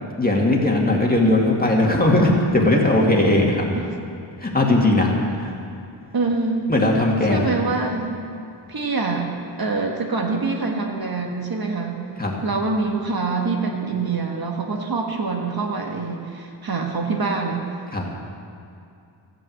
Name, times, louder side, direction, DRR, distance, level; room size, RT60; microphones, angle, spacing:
voice 1, 0.2-3.7 4.4-5.5 6.7-7.5 12.2-12.3 17.9-18.0, left 1 dB, 20° left, -2 dB, 2.2 m, -18 dB
voice 2, 6.1-6.7 7.3-8.2 8.7-9.3 9.6-12.1 12.4-17.6, right 3 dB, 50° right, 1 dB, 1.5 m, -25 dB
14.5 x 9.0 x 7.9 m, 2.5 s
wide cardioid pair, 135°, 47 cm